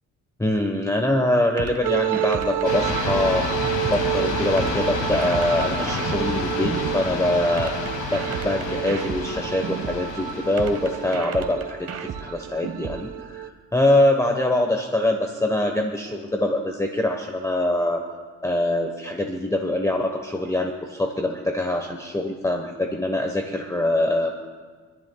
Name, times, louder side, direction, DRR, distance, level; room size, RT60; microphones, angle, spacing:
voice 1, 0.4-3.5 3.9-7.7 8.1-18.0 18.4-24.3, left 1 dB, 10° left, 3 dB, 1.0 m, -24 dB
sound 1, 1.6-4.1 4.6-7.1 7.6-10.1 10.6-13.1, right 7 dB, 55° right, 1.1 m, -34 dB
sound 2, 1.8-13.5, right 13 dB, 85° right, 0.7 m, -30 dB
sound 3, 2.6-11.2, left 4 dB, 85° left, 2.1 m, -29 dB
28.5 x 11.0 x 2.3 m, 1.5 s
cardioid pair, 90°, 30 cm